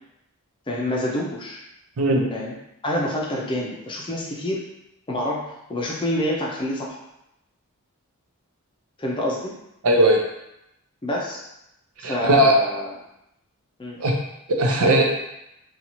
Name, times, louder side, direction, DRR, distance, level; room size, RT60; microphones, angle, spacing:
voice 1, 0.7-1.6 2.3-2.5 2.8-4.6 5.1-7.0 9.0-9.5 11.0-11.4 12.0-12.9 13.8-14.0, left 1 dB, 20° left, -3 dB, 0.5 m, -27 dB
voice 2, 9.8-10.2 12.0-12.5 14.0-14.1 14.5-15.0, right 1 dB, 85° right, 1 dB, 0.6 m, -18 dB
2.8 x 2.3 x 2.9 m, 0.84 s
head